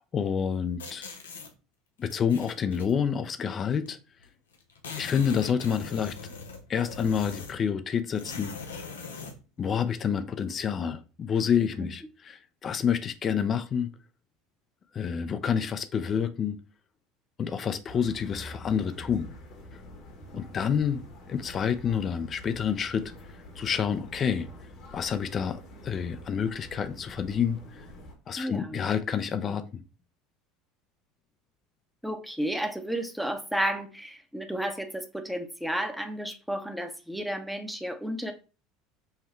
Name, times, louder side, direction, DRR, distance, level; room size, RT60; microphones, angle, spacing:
voice 1, 0.1-1.0 2.0-4.0 5.0-6.1 6.7-8.5 9.6-13.9 14.9-16.6 17.4-19.3 20.3-21.0 21.3-23.1 23.6-24.5 24.9-27.8 28.3-29.8, left 7 dB, 40° left, 0.6 m, -28 dB
sound 1, 0.8-1.5 2.1-2.9 3.9-4.0 4.2-4.3 4.5-7.7 8.2-9.4, left 5 dB, 90° left, 0.7 m, -41 dB
sound 2, 17.9-28.1, left 1 dB, 55° left, 1.3 m, -47 dB
voice 2, 28.4-28.8 32.0-38.3, right 1 dB, 5° right, 0.8 m, -32 dB
5.7 x 2.2 x 3.1 m
hypercardioid pair, 80°, 0 cm